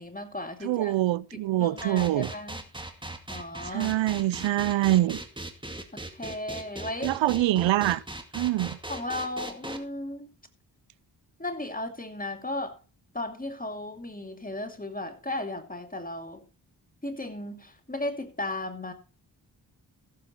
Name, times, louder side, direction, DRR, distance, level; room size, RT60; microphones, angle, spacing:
voice 1, 0.0-0.9 1.3-2.6 3.3-3.9 5.9-7.2 8.9-10.3 11.4-12.8 13.1-16.4 17.0-18.9, left 1 dB, 20° left, 2.6 m, -35 dB
voice 2, 0.6-2.3 3.7-5.2 7.0-8.0 8.3-8.8, right 15 dB, 85° right, 0.6 m, -25 dB
sound 1, 1.8-9.8, right 1 dB, 10° right, 2.1 m, -38 dB
15.0 x 7.5 x 4.3 m
cardioid pair, 40°, 44 cm